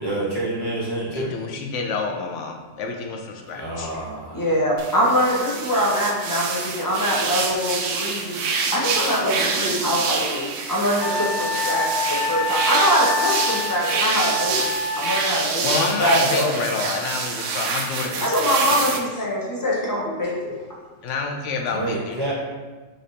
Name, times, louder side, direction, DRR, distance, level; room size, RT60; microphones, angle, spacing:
voice 1, 0.0-1.3 3.5-4.5 21.7-22.3, right 1 dB, 20° right, -8 dB, 1.1 m, -28 dB
voice 2, 1.1-3.9 15.6-19.0 21.0-22.3, left 4 dB, 80° left, 2 dB, 0.9 m, -28 dB
voice 3, 4.3-8.4 8.7-14.6 14.9-16.5 18.2-20.6, equal, 20° left, -4 dB, 0.9 m, -23 dB
sound 1, 4.8-19.0, right 4 dB, 80° right, 0.9 m, -27 dB
Wind instrument woodwind instrument, 11.0-15.2, left 2 dB, 50° left, 0.7 m, -26 dB
3.9 x 3.2 x 4.0 m, 1.3 s
omnidirectional pair, 1.3 m